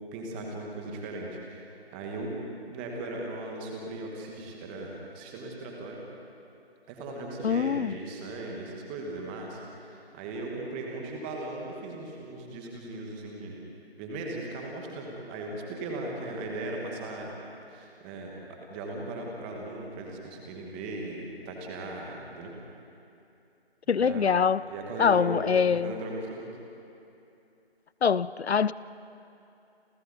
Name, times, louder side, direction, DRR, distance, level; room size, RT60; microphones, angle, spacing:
voice 1, 0.1-2.3 2.7-6.0 6.9-13.5 14.0-17.3 17.7-22.5 24.0-24.3 24.7-25.4 25.7-26.5, right 2 dB, 10° right, 0 dB, 1.4 m, -38 dB
voice 2, 7.4-7.9 23.9-24.6 25.0-26.0 28.0-28.7, left 6 dB, 80° left, 18 dB, 0.6 m, -24 dB
29.0 x 26.5 x 4.0 m, 2.8 s
figure-of-eight pair, 160°, 32 cm